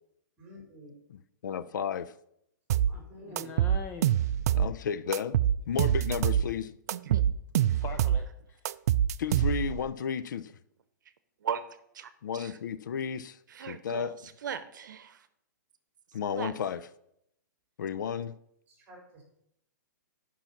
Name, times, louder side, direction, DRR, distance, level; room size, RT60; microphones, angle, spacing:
voice 1, 0.4-0.9 2.9-3.5 18.7-19.2, equal, 15° right, 4.6 m, -49 dB
voice 2, 1.4-2.1 4.5-5.4 5.7-6.7 9.2-10.5 12.2-14.1 16.1-16.8 17.8-18.3, left 7 dB, 70° left, 0.6 m, -33 dB
sound 1, 2.7-2.9 3.4-4.7 5.1-6.5 6.9-8.2 8.6-9.8, right 10 dB, 55° right, 0.4 m, -25 dB
voice 3, 3.2-4.3 7.7-8.6, left 5 dB, 20° left, 0.7 m, -43 dB
voice 4, 6.9-7.2 7.7-7.8 11.4-11.7 11.9-12.6 13.5-15.3 16.3-16.5, right 8 dB, 75° right, 0.9 m, -38 dB
11.5 x 5.7 x 5.9 m
hypercardioid pair, 155°, 10 cm